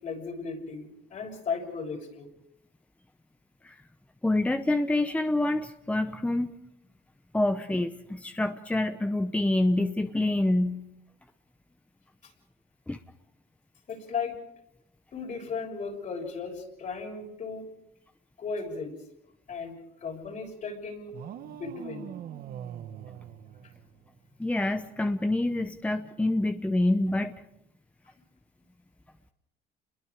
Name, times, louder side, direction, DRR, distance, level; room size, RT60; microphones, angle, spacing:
voice 1, 0.0-2.3 12.2-12.3 13.9-14.3 15.1-17.6 18.4-18.9 19.5-22.1, left 5 dB, 50° left, 1 dB, 6.6 m, -36 dB
voice 2, 4.2-6.6 7.3-10.8 12.9-13.0 24.4-27.3, left 2 dB, 10° left, 8 dB, 0.9 m, -27 dB
sound 1, 21.1-24.3, right 10 dB, 60° right, 1.1 m, -42 dB
29.5 x 22.0 x 4.9 m, 0.79 s
cardioid pair, 110°, 17 cm